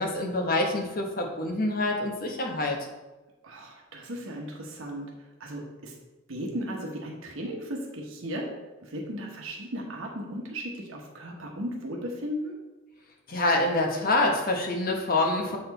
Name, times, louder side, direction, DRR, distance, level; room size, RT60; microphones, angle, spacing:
voice 1, 0.0-2.8 13.3-15.6, left 2 dB, 45° left, 1 dB, 1.1 m, -26 dB
voice 2, 3.4-5.1 5.4-5.9 6.3-8.5 8.8-12.5, equal, 85° right, 0 dB, 1.1 m, -36 dB
7.5 x 4.3 x 4.1 m, 1.1 s
head